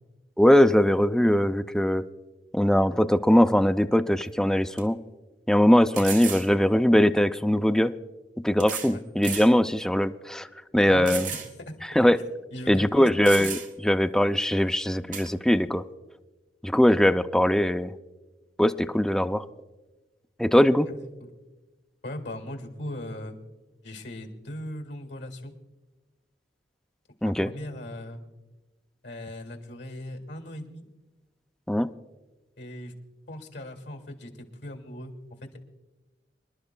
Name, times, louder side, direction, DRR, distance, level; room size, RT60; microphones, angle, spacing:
voice 1, 0.4-2.0 2.5-5.0 5.5-7.9 8.4-10.5 10.7-11.3 11.9-12.2 12.7-15.8 16.6-17.9 18.6-19.4 20.4-20.9 27.2-27.5 31.7-31.9, equal, 5° left, 8 dB, 0.3 m, -21 dB
sound 1, 4.2-4.3 4.8-4.9 5.9-6.5 7.6-7.7 8.6-8.9 9.2-9.5 10.0-10.1 11.1-11.5 11.9-12.0 12.8-12.9 13.2-13.9 15.1-15.3, right 6 dB, 45° right, 1.2 m, -34 dB
voice 2, 10.9-11.2 11.6-11.8 12.5-13.1 20.9-21.0 22.0-23.4 23.8-25.5 27.2-28.2 29.0-30.8 32.6-32.9 33.3-34.3 34.6-35.1, left 1 dB, 75° left, 5 dB, 1.7 m, -38 dB
26.0 x 11.5 x 2.2 m, 1.1 s
head